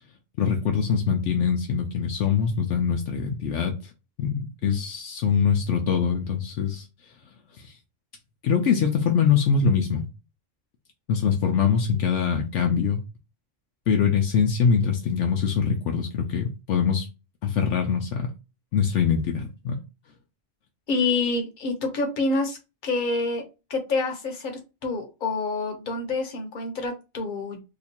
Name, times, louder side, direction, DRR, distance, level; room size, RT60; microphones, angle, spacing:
voice 1, 0.4-3.9 4.2-6.9 7.5-7.8 8.4-10.1 11.1-13.0 13.9-17.1 17.4-18.3 18.7-19.8, left 6 dB, 70° left, 0.9 m, -23 dB
voice 2, 20.9-22.6 22.8-23.4 23.7-27.6, left 3 dB, 45° left, 1.0 m, -27 dB
2.9 x 2.4 x 4.2 m
omnidirectional pair, 1.3 m